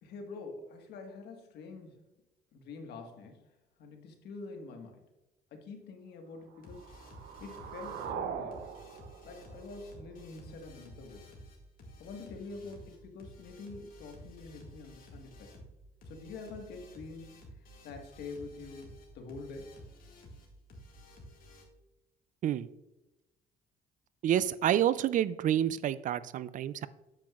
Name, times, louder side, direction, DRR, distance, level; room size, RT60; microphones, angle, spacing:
voice 1, 0.0-2.0 2.5-3.4 3.8-5.0 5.5-7.0 7.4-8.6 9.2-11.3 12.0-15.6 16.1-17.4 17.8-19.7, left 3 dB, 75° left, 3 dB, 1.5 m, -46 dB
sound 1, 6.5-10.5, right 7 dB, 75° right, 0.8 m, -42 dB
sound 2, 6.6-21.6, equal, 55° left, 2.0 m, -52 dB
voice 2, 24.2-26.9, right 11 dB, 50° right, 17 dB, 0.4 m, -28 dB
8.8 x 7.6 x 2.4 m, 0.98 s
cardioid pair, 110°, 17 cm